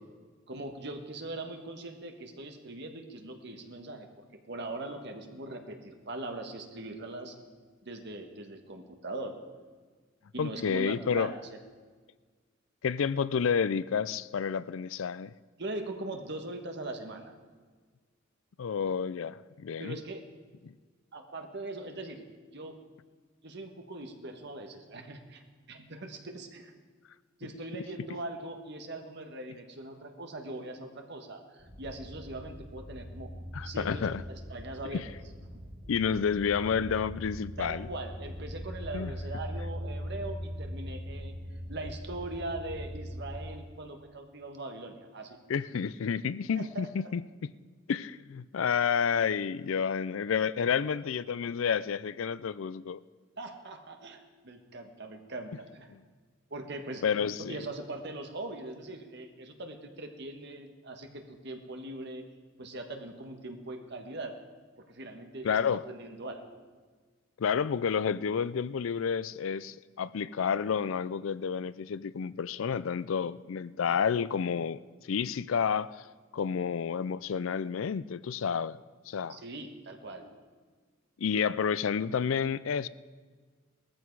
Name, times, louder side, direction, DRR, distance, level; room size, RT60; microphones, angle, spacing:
voice 1, 0.5-4.1 4.5-7.3 7.8-9.4 10.3-11.4 15.6-17.3 19.8-20.2 21.1-22.2 22.5-22.7 23.4-25.4 25.7-26.7 27.4-33.3 33.6-35.0 37.6-41.4 41.7-45.4 46.5-47.1 50.6-50.7 53.4-55.9 56.5-57.0 57.4-62.2 62.6-64.3 64.8-66.6 79.3-80.4, right 2 dB, 55° right, 1.5 m, -41 dB
voice 2, 10.4-11.3 12.8-15.3 18.6-20.0 20.6-20.7 33.5-34.2 34.9-35.0 35.9-37.9 38.9-39.1 45.5-47.2 47.9-53.0 55.9-56.0 57.0-57.6 65.4-65.8 67.4-74.8 75.1-76.0 76.3-78.8 79.1-79.4 81.2-82.9, left 6 dB, 75° left, 0.4 m, -30 dB
sound 1, 31.6-43.4, equal, 80° right, 5.5 m, -41 dB
18.0 x 14.0 x 4.7 m
head